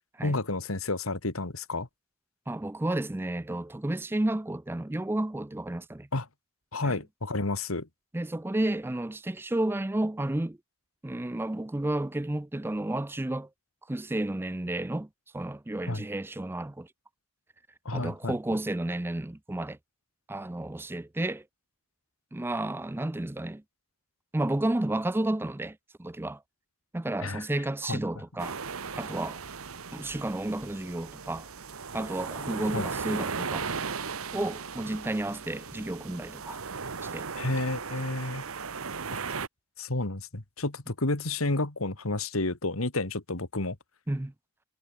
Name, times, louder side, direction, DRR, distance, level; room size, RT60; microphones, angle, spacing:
voice 1, 0.2-1.9 6.1-6.3 6.7-7.9 15.9-16.0 17.9-18.4 27.2-27.4 27.8-28.0 32.7-32.9 37.4-38.4 39.1-39.2 39.8-43.8, left 2 dB, 80° left, 2.3 m, -30 dB
voice 2, 2.5-6.1 6.8-7.0 8.1-10.6 11.0-13.5 13.9-15.1 15.3-16.9 17.9-19.8 20.3-21.4 22.3-23.6 24.3-26.4 26.9-28.6 29.0-29.4 29.9-31.5 31.9-33.7 34.3-36.6 37.0-37.3 44.1-44.3, right 1 dB, 10° right, 0.4 m, -31 dB
sound 1, 28.4-39.5, right 5 dB, 85° right, 1.2 m, -37 dB
head